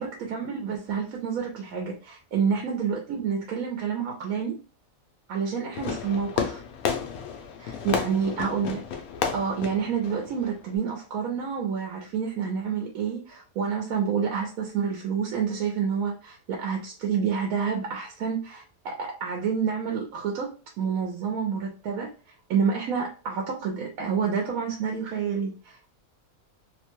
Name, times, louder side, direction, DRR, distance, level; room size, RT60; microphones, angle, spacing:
voice 1, 0.0-4.6 5.3-6.6 7.6-8.8 9.3-22.1 22.5-25.9, right 6 dB, 90° right, 0 dB, 1.1 m, -28 dB
Fireworks, 5.7-10.8, left 7 dB, 90° left, 1.0 m, -32 dB
2.9 x 2.1 x 2.9 m, 0.35 s
omnidirectional pair, 1.5 m